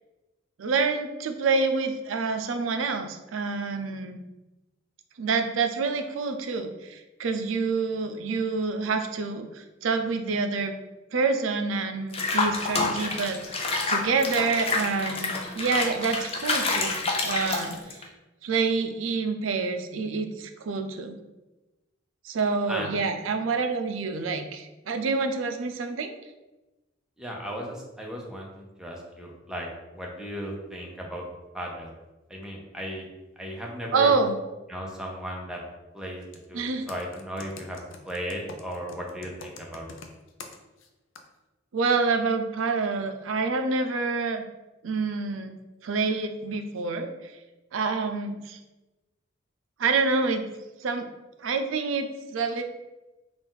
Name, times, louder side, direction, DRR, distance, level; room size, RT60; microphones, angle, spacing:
voice 1, 0.6-4.2 5.2-10.7 11.1-17.8 18.4-21.1 22.2-26.1 33.9-34.4 36.5-36.8 41.7-44.4 44.8-45.6 45.8-47.1 47.7-48.6 49.8-50.5 50.8-51.1 51.4-52.6, right 4 dB, 85° right, 7 dB, 0.5 m, -27 dB
Water / Bathtub (filling or washing), 12.1-18.0, left 3 dB, 30° left, 0.5 m, -28 dB
voice 2, 27.2-29.7 29.9-31.2 31.5-31.9 32.3-33.1 33.4-34.1 34.7-35.6 35.9-37.8 38.0-39.9, equal, 5° right, -2 dB, 0.7 m, -36 dB
Computer keyboard, 36.2-36.4 36.9-40.9 41.2-41.3, left 4 dB, 80° left, 0.5 m, -44 dB
4.0 x 2.4 x 4.0 m, 1.1 s
head